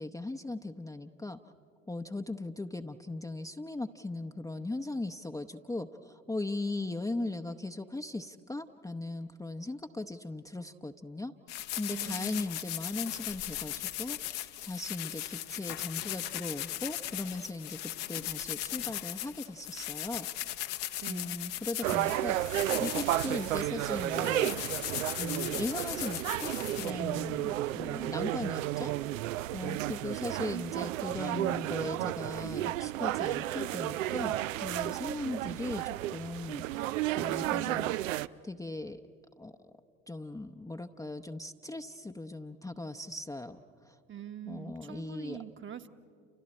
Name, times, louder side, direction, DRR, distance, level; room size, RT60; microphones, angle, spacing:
voice 1, 0.0-1.4 1.9-11.3 11.8-20.3 21.1-24.7 25.2-28.9 29.5-36.6 37.1-37.9 38.4-39.0 39.4-39.6 40.1-44.0 44.5-45.4, left 2 dB, 10° left, 5 dB, 0.8 m, -38 dB
sound 1, 11.5-26.9, left 13 dB, 65° left, 1.1 m, -38 dB
voice 2, 11.9-12.6 21.0-21.4 44.1-45.9, right 9 dB, 30° right, 7 dB, 1.2 m, -44 dB
sound 2, 21.8-38.3, right 15 dB, 75° right, 0.5 m, -32 dB
30.0 x 29.0 x 4.3 m, 2.4 s
figure-of-eight pair, 60°, 39 cm